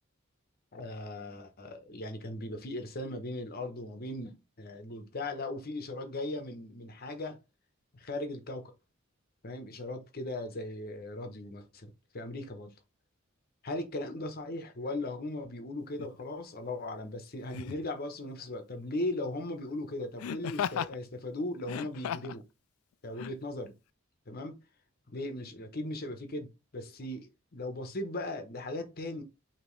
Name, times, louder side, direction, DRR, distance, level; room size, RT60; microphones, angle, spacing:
voice 1, 0.7-7.4 7.9-8.7 9.4-12.7 13.6-22.4 23.0-23.7 24.3-24.5 25.1-29.2, left 2 dB, 45° left, 0.9 m, -38 dB
Laughter, 16.0-16.2 17.5-17.9 20.2-21.0 21.6-22.4 23.2-23.3, left 8 dB, 85° left, 0.3 m, -35 dB
5.2 x 2.9 x 3.1 m
head